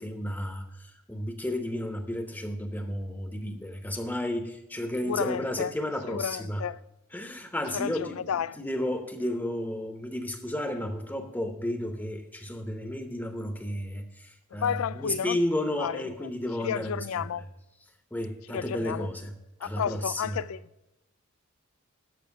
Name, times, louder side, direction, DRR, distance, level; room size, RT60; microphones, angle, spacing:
voice 1, 0.0-6.6 7.1-8.2 8.6-17.3 18.1-19.3 19.6-20.4, left 1 dB, 10° left, 0.8 m, -32 dB
voice 2, 5.0-5.7 6.1-6.8 7.7-8.7 14.5-15.4 15.8-16.3 16.6-17.5 18.5-19.1 19.6-20.6, left 8 dB, 75° left, 0.4 m, -32 dB
12.5 x 5.9 x 5.8 m
head